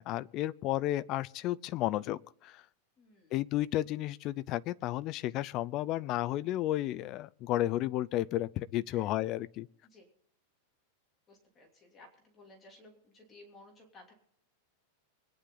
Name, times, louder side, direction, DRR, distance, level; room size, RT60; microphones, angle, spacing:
voice 1, 0.0-2.6 3.3-9.7, left 15 dB, 35° left, 0.5 m, -32 dB
voice 2, 3.0-3.4 8.9-9.1 9.8-10.1 11.3-14.1, left 2 dB, 20° left, 2.9 m, -57 dB
25.0 x 10.0 x 3.9 m
supercardioid pair, 165°, 0 cm